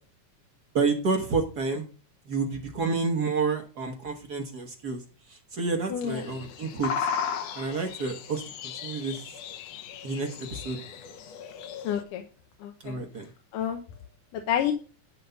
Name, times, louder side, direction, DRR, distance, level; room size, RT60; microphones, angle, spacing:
voice 1, 0.7-1.8 2.3-5.0 5.5-6.9 7.5-9.2 10.0-10.8 12.8-13.3, right 4 dB, 60° right, 3 dB, 1.0 m, -29 dB
voice 2, 5.9-6.2 11.8-12.2 12.6-12.9 13.5-13.8 14.3-14.7, left 10 dB, 85° left, 5 dB, 2.5 m, -29 dB
sound 1, 6.1-12.0, left 7 dB, 65° left, 1.8 m, -36 dB
11.0 x 4.0 x 6.9 m, 0.39 s
omnidirectional pair, 3.6 m